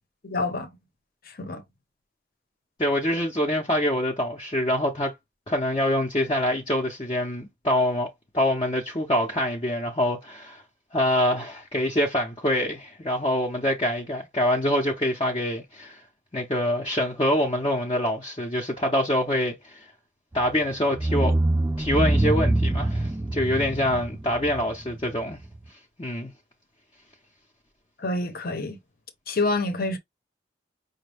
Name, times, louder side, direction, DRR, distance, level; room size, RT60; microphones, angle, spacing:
voice 1, 0.2-0.7 1.4-1.6 28.0-28.8 29.3-30.0, left 2 dB, 55° left, 0.8 m, -27 dB
voice 2, 2.8-5.2 5.5-10.6 10.9-16.0 16.3-19.8 20.3-21.3 21.8-25.4 26.0-26.3, left 1 dB, 30° left, 0.7 m, -25 dB
sound 1, 20.3-20.5 20.9-25.6, right 1 dB, 15° right, 0.3 m, -24 dB
5.2 x 2.2 x 3.3 m
head